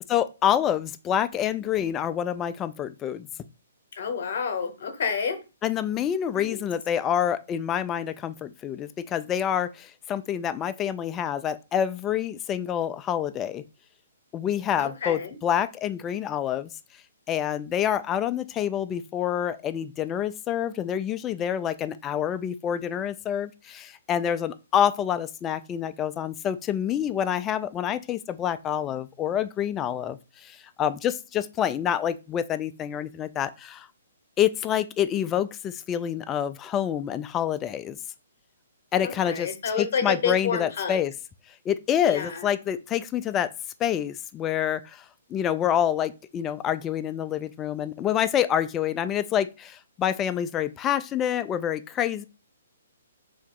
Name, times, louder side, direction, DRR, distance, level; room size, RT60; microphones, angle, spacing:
voice 1, 0.1-3.3 5.6-13.6 14.3-16.7 17.3-33.9 34.4-38.0 38.9-39.5 39.8-41.1 41.7-43.5 43.8-44.8 45.3-52.2, left 10 dB, 20° left, 0.3 m, -27 dB
voice 2, 4.0-5.4 6.4-6.7 14.8-15.4 39.0-41.0 42.0-42.5, left 6 dB, 60° left, 0.9 m, -29 dB
3.5 x 2.8 x 3.7 m
figure-of-eight pair, 130°, 0 cm